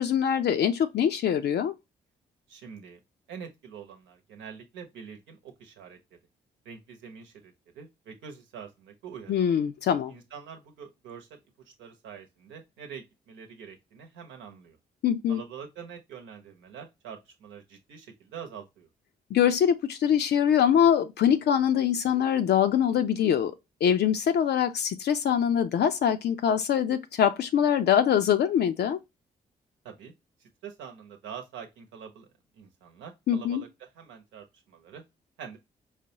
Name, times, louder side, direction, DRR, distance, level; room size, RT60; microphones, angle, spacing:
voice 1, 0.0-1.7 9.3-10.1 15.0-15.4 19.3-23.5 23.8-29.0 33.3-33.6, left 9 dB, 60° left, 0.5 m, -23 dB
voice 2, 2.5-3.0 3.3-6.0 6.6-9.6 10.1-11.3 11.8-14.8 15.3-18.9 29.8-30.1 30.4-32.3 32.6-35.0 35.4-35.6, right 7 dB, 80° right, 1.0 m, -45 dB
4.7 x 2.2 x 2.9 m
hypercardioid pair, 45°, 19 cm